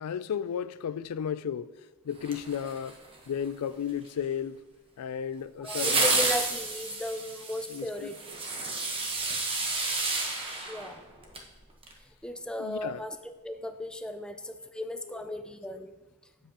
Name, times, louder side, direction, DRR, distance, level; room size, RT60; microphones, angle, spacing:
voice 1, 0.0-1.7 2.0-3.0 3.3-4.6 5.0-6.3 7.7-8.1 12.6-13.0 15.1-15.4, left 8 dB, 85° left, 0.3 m, -34 dB
sound 1, 2.2-3.2 5.7-11.5 11.8-11.9, right 3 dB, 25° right, 1.1 m, -30 dB
voice 2, 5.6-8.2 10.7-11.1 12.2-15.9, left 1 dB, 5° left, 0.4 m, -36 dB
8.4 x 7.4 x 2.9 m
head